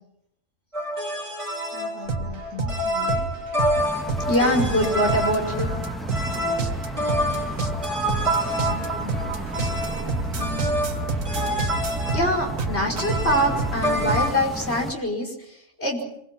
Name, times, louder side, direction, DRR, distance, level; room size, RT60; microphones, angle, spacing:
sound 1, 0.7-14.4, equal, 25° right, 3.2 m, -28 dB
voice 1, 1.0-1.4 2.5-2.7 4.3-5.8 12.1-16.0, equal, 50° left, 1 dB, 5.6 m, -24 dB
voice 2, 1.7-3.3 8.0-9.4 9.7-10.9, left 6 dB, 90° left, 2 dB, 2.7 m, -41 dB
sound 2, 2.1-14.3, right 3 dB, 75° right, 2.0 m, -29 dB
sound 3, 3.7-14.9, right 1 dB, ahead, 1.6 m, -35 dB
25.0 x 22.5 x 6.0 m, 0.74 s
omnidirectional pair, 1.4 m